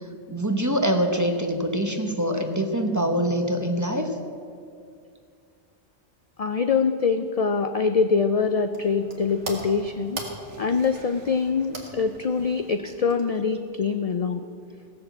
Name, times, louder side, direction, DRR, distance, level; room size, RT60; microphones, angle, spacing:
voice 1, 0.3-4.1, equal, 15° right, 4 dB, 0.9 m, -24 dB
voice 2, 6.4-10.3 10.6-14.4, left 5 dB, 55° left, 8 dB, 0.4 m, -24 dB
sound 1, 8.3-13.6, right 2 dB, 75° right, 2.1 m, -41 dB
16.0 x 6.9 x 7.9 m, 2.4 s
omnidirectional pair, 1.2 m